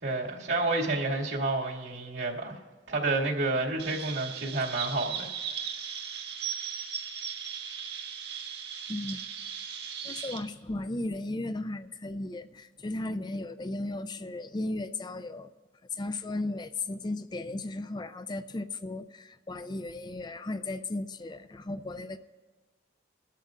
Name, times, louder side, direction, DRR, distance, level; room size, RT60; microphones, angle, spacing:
voice 1, 0.0-2.6 2.9-5.3, right 2 dB, 85° right, -2 dB, 2.4 m, -29 dB
Chirp tweet, 3.8-10.4, right 7 dB, 70° right, 1.6 m, -37 dB
voice 2, 8.9-9.2 10.0-15.5 15.9-22.2, left 2 dB, 25° left, 11 dB, 0.4 m, -35 dB
21.5 x 13.0 x 2.5 m, 1.3 s
head